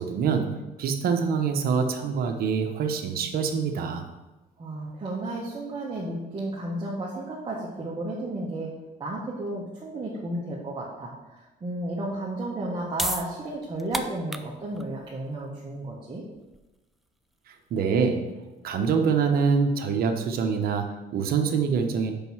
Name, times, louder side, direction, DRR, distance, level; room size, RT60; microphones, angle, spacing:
voice 1, 0.0-4.0 17.7-18.3 18.6-22.1, right 5 dB, 60° right, 4 dB, 1.0 m, -25 dB
voice 2, 4.6-8.7 9.0-16.2, right 1 dB, 30° right, -5 dB, 1.4 m, -33 dB
sound 1, 12.5-19.3, equal, ahead, 0.4 m, -37 dB
5.5 x 5.3 x 6.2 m, 1.1 s
cardioid pair, 110°, 17 cm